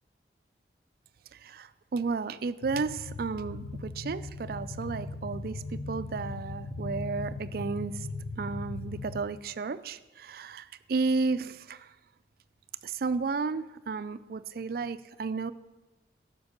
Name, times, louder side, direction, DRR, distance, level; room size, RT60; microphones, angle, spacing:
voice 1, 1.3-8.1 8.4-11.9 12.8-15.5, right 4 dB, 55° right, 14 dB, 0.4 m, -33 dB
sound 1, 2.6-9.2, left 2 dB, 75° left, 0.8 m, -38 dB
12.5 x 5.2 x 6.4 m, 1.1 s
head